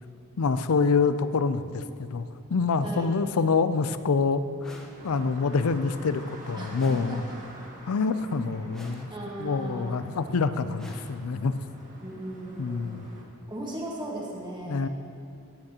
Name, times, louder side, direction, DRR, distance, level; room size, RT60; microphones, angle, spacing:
voice 1, 0.4-1.8 2.1-7.2 7.9-9.1 9.4-11.5 12.6-13.1 14.7-14.9, left 4 dB, 80° left, 12 dB, 0.5 m, -26 dB
voice 2, 2.8-3.1 6.6-7.2 9.1-10.0 12.0-13.0 13.5-14.9, right 1 dB, 20° right, -4 dB, 1.5 m, -37 dB
sound 1, 4.6-5.5 6.7-7.7 8.7-9.5 10.7-11.7, equal, 5° left, 0.9 m, -50 dB
sound 2, 4.9-13.2, right 1 dB, 35° right, 1.6 m, -47 dB
15.5 x 8.9 x 2.9 m, 2.7 s
head